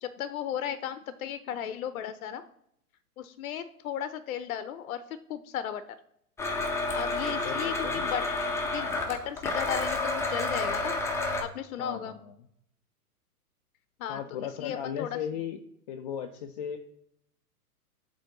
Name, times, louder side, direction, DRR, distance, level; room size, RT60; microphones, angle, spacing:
voice 1, 0.0-2.4 3.2-5.0 5.3-5.8 6.9-11.0 11.4-12.2 14.0-14.2 14.6-15.2, left 9 dB, 65° left, 12 dB, 0.7 m, -35 dB
Domestic sounds home sounds, 6.4-11.4, left 2 dB, 5° left, 0.7 m, -30 dB
voice 2, 7.3-8.1 11.8-12.3 14.1-15.6 15.9-16.8, left 8 dB, 30° left, 6 dB, 0.4 m, -36 dB
7.4 x 3.4 x 4.0 m, 0.75 s
hypercardioid pair, 115°, 46 cm